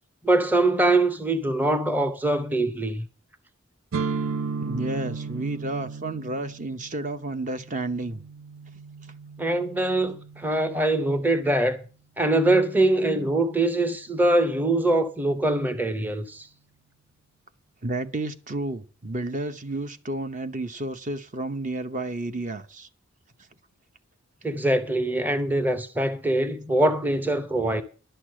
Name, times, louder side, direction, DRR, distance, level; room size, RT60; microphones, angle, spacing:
voice 1, 0.2-3.1 9.4-11.8 12.2-16.5 24.4-27.8, right 2 dB, 10° right, 0.7 m, -23 dB
sound 1, 3.9-11.7, right 5 dB, 75° right, 0.6 m, -35 dB
voice 2, 4.6-8.2 17.8-22.9, right 2 dB, 40° right, 0.8 m, -31 dB
11.0 x 6.7 x 7.6 m
head